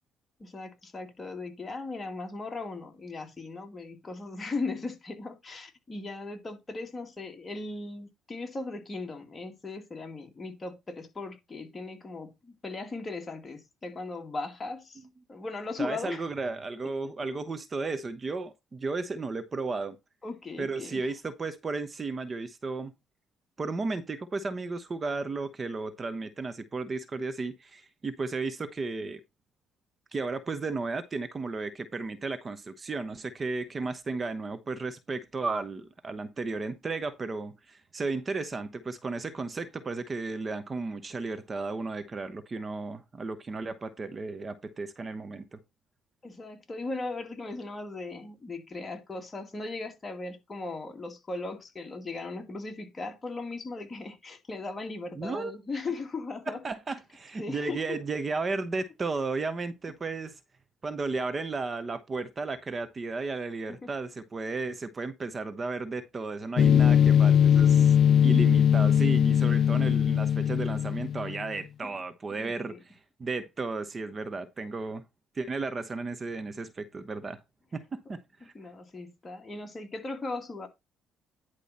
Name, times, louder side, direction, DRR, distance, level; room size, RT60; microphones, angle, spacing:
voice 1, 0.4-15.0 15.3-16.3 20.2-21.1 46.2-56.6 57.4-58.0 63.8-63.9 71.8-72.0 72.3-72.8 78.5-80.7, left 3 dB, 25° left, 2.3 m, -38 dB
voice 2, 15.8-20.0 20.6-22.9 23.6-29.2 30.1-45.6 55.2-55.5 56.5-60.4 60.8-67.9 68.2-75.0 75.3-77.4 77.7-78.5, right 3 dB, 35° right, 1.0 m, -34 dB
sound 1, 66.6-71.4, left 9 dB, 55° left, 0.5 m, -21 dB
10.5 x 4.8 x 4.2 m
cardioid pair, 90°, 0 cm